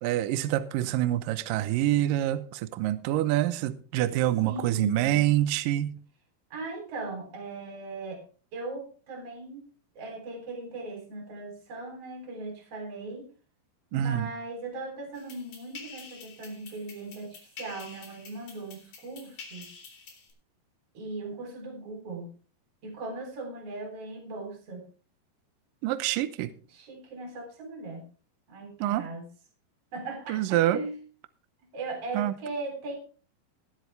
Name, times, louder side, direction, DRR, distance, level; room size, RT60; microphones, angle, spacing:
voice 1, 0.0-6.0 13.9-14.3 25.8-26.5 28.8-29.0 30.3-30.8 32.1-32.3, right 13 dB, 80° right, 2.0 m, -26 dB
voice 2, 4.4-5.3 6.5-8.2 8.5-9.6 10.0-13.3 13.9-19.7 20.9-22.3 22.8-24.8 26.7-28.0 28.5-29.3 29.9-31.0 31.7-33.0, right 2 dB, 35° right, 4.2 m, -38 dB
sound 1, 15.1-20.3, left 5 dB, 60° left, 5.5 m, -48 dB
20.5 x 8.1 x 3.4 m
omnidirectional pair, 4.9 m